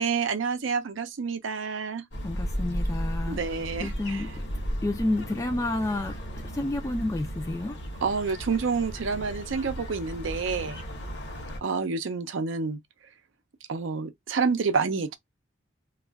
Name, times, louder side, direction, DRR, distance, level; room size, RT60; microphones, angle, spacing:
voice 1, 0.0-2.0 3.3-4.3 8.0-10.8 11.6-12.8 13.7-15.2, right 5 dB, 80° right, 0.5 m, -28 dB
sound 1, 2.1-11.6, equal, 55° left, 0.9 m, -35 dB
voice 2, 2.2-3.4 3.8-4.3 4.8-6.2 6.5-7.7, left 2 dB, 15° left, 0.3 m, -29 dB
2.3 x 2.2 x 3.4 m
head